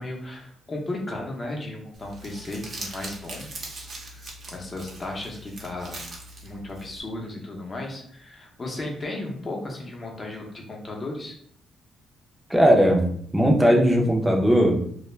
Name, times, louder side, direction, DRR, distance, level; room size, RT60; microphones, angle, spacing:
voice 1, 0.0-3.5 4.1-6.0 6.4-11.4, left 2 dB, 30° left, 0 dB, 0.7 m, -35 dB
Crumpling crinkling, 1.9-7.0, right 2 dB, 45° right, 0.7 m, -40 dB
voice 2, 12.5-13.1 13.3-14.8, equal, 5° right, -1 dB, 0.6 m, -18 dB
2.2 x 2.1 x 3.1 m, 0.64 s
cardioid pair, 90°, 0 cm